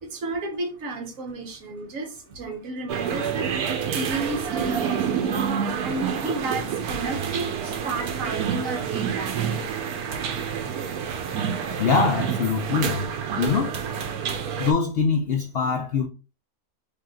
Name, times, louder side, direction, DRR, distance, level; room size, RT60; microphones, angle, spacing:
voice 1, 0.0-3.5 3.9-5.4 5.8-9.7, right 2 dB, 65° right, 1.3 m, -32 dB
sound 1, 2.9-14.7, right 7 dB, 85° right, 1.1 m, -28 dB
voice 2, 11.8-13.1 13.4-13.7 14.6-16.1, left 5 dB, 80° left, 0.5 m, -23 dB
3.4 x 2.7 x 3.6 m
omnidirectional pair, 1.6 m